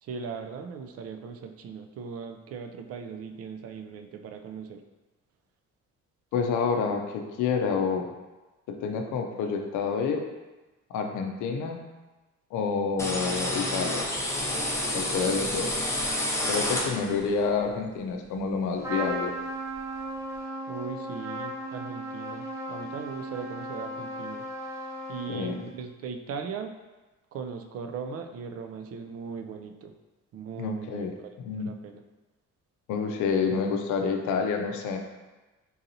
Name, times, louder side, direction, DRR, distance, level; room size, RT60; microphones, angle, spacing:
voice 1, 0.0-4.8 20.7-24.4 25.1-26.8 27.3-29.9 30.3-31.1 31.6-32.0, right 5 dB, 50° right, 5 dB, 0.4 m, -39 dB
voice 2, 6.3-8.1 8.7-10.2 10.9-11.8 12.5-14.1 14.9-15.8 16.5-19.3 25.3-25.6 30.6-31.1 31.4-31.7 32.9-35.0, left 5 dB, 85° left, 4 dB, 0.5 m, -28 dB
sound 1, 13.0-17.3, left 1 dB, 10° left, 0.6 m, -29 dB
Trumpet, 18.8-25.7, right 1 dB, 10° right, 0.9 m, -36 dB
3.9 x 2.8 x 2.6 m, 1.2 s
cardioid pair, 90°, 30 cm